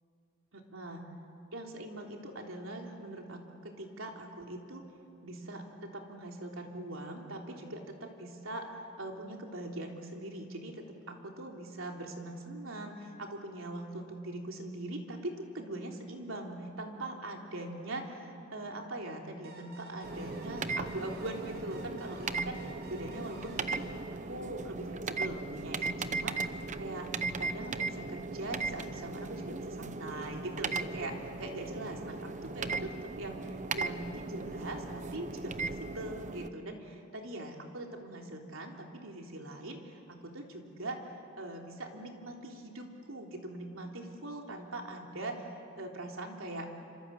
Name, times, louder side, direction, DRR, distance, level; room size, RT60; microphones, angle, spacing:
voice 1, 0.5-1.0 1.5-4.8 5.2-22.6 22.9-23.9 24.3-27.1 27.4-46.7, right 1 dB, 75° right, 1 dB, 3.5 m, -42 dB
sound 1, 19.4-24.9, right 2 dB, 55° right, 6.5 m, -53 dB
sound 2, 20.0-36.5, right 3 dB, 35° right, 0.8 m, -37 dB
28.0 x 26.0 x 8.2 m, 2.7 s
head